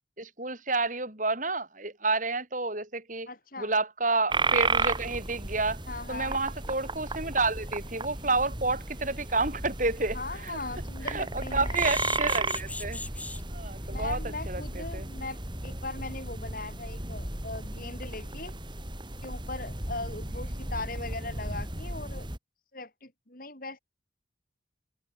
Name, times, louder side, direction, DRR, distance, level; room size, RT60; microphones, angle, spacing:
voice 1, 0.2-3.3 3.6-5.8 6.1-10.6 11.0-13.0 13.5-14.2 14.5-15.1, right 3 dB, 40° right, 5.1 m, -30 dB
voice 2, 3.3-3.7 5.9-6.3 10.1-11.8 13.9-18.5 19.2-22.3 22.7-23.8, left 2 dB, 45° left, 7.4 m, -39 dB
sound 1, 4.3-22.4, right 3 dB, 25° right, 5.9 m, -34 dB
sound 2, 10.0-10.1 10.4-10.6 11.7-13.4 14.0-14.2 14.5-14.6 14.9-15.0, left 2 dB, 5° left, 3.6 m, -37 dB
head